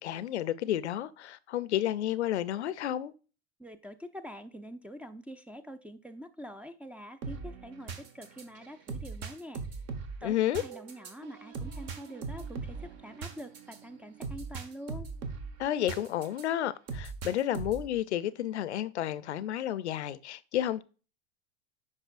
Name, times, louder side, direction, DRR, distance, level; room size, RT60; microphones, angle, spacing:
voice 1, 0.0-3.1 10.2-10.6 15.6-20.8, left 12 dB, 85° left, 0.6 m, -31 dB
voice 2, 3.6-9.6 10.2-15.1, equal, 5° right, 0.4 m, -45 dB
sound 1, 7.2-16.4 16.9-18.0, right 4 dB, 50° right, 1.3 m, -40 dB
8.1 x 5.5 x 2.5 m
hypercardioid pair, 95°, 33 cm